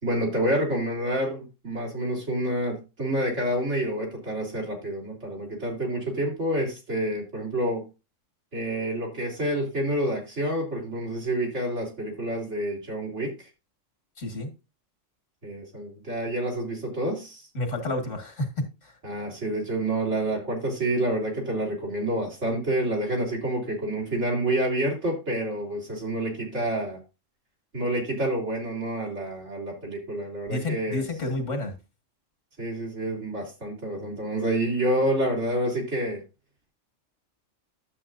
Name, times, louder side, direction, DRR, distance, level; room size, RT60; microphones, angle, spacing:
voice 1, 0.0-7.8 8.5-13.5 15.4-17.5 19.0-27.0 27.7-31.0 32.6-36.2, right 1 dB, 65° right, 3.4 m, -28 dB
voice 2, 14.2-14.5 17.5-18.5 18.8-18.9 30.5-31.7, left 2 dB, 70° left, 2.2 m, -30 dB
11.0 x 7.6 x 2.6 m
omnidirectional pair, 1.3 m